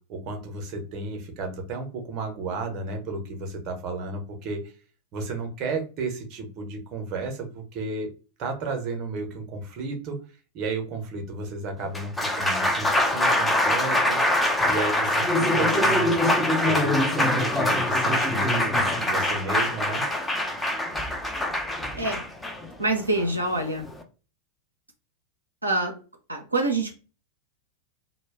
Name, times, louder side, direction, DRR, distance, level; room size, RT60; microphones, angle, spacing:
voice 1, 0.1-4.7 5.1-8.1 8.4-10.2 10.5-14.2 14.7-16.2 16.6-20.0, right 3 dB, 35° right, 3 dB, 0.6 m, -33 dB
Applause, 11.8-24.0, left 1 dB, 10° left, 0.4 m, -24 dB
voice 2, 22.8-23.9 25.6-25.9 26.3-26.9, right 2 dB, 85° right, 1 dB, 0.5 m, -25 dB
2.2 x 2.0 x 3.3 m, 0.34 s
figure-of-eight pair, 90°, 0 cm